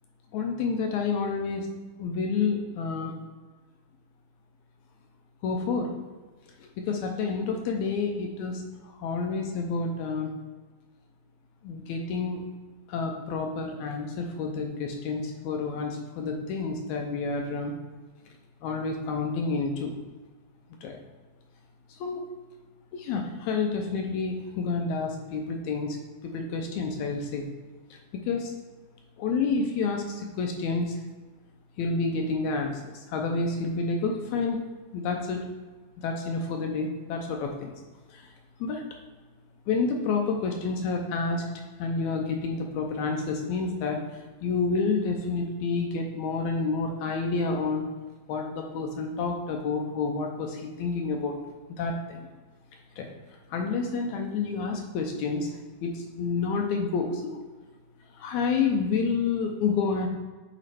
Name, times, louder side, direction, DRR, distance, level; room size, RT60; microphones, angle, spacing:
voice 1, 0.3-1.7 2.0-3.1 5.4-5.9 6.6-10.3 11.6-12.4 12.9-17.7 18.6-20.0 20.8-21.0 21.9-22.2 22.9-26.0 26.2-27.5 27.9-28.5 29.2-31.0 31.8-34.6 34.9-35.4 36.0-37.7 38.1-38.3 38.6-38.8 39.7-41.4 41.8-47.8 48.3-51.4 51.8-52.3 53.0-53.1 53.5-57.4 58.1-60.1, left 4 dB, 80° left, 2 dB, 1.9 m, -29 dB
8.2 x 3.0 x 4.2 m, 1.3 s
omnidirectional pair, 3.5 m